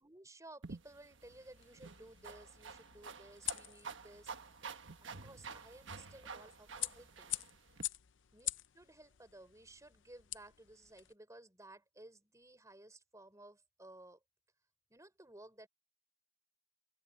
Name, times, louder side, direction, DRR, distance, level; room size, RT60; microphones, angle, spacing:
voice 1, 0.0-4.3 4.6-7.4 8.3-14.2 14.9-15.7, right 1 dB, 15° right, 5.9 m, -57 dB
sound 1, 0.6-7.8, right 5 dB, 65° right, 1.4 m, -50 dB
sound 2, 1.2-11.1, left 16 dB, 65° left, 0.6 m, -47 dB
open air
head